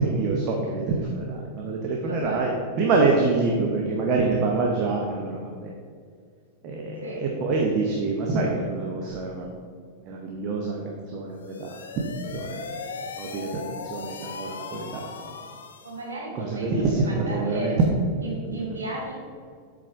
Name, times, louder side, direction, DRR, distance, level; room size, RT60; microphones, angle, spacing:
voice 1, 0.0-5.7 6.6-9.5 10.0-12.0 12.3-12.6 13.2-15.0 16.3-17.7 18.5-18.7, right 3 dB, 40° right, 0 dB, 0.8 m, -26 dB
voice 2, 2.0-2.5 7.0-7.2 15.8-17.8 18.2-19.1, right 2 dB, 70° right, -3 dB, 1.5 m, -34 dB
sound 1, 11.3-16.1, left 5 dB, 65° left, 0.5 m, -38 dB
7.4 x 4.0 x 4.6 m, 2.1 s
figure-of-eight pair, 90°, 0 cm